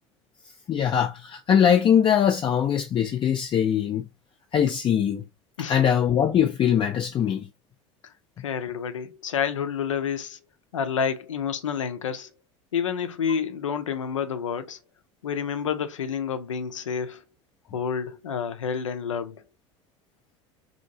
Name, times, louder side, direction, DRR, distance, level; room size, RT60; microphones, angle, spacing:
voice 1, 0.7-4.1 4.5-5.2 5.7-7.5, left 9 dB, 30° left, 0.4 m, -22 dB
voice 2, 8.0-10.4 10.7-12.3 12.7-14.8 15.2-17.2 17.7-19.4, left 7 dB, 85° left, 0.4 m, -29 dB
2.7 x 2.7 x 2.7 m
hypercardioid pair, 75°, 16 cm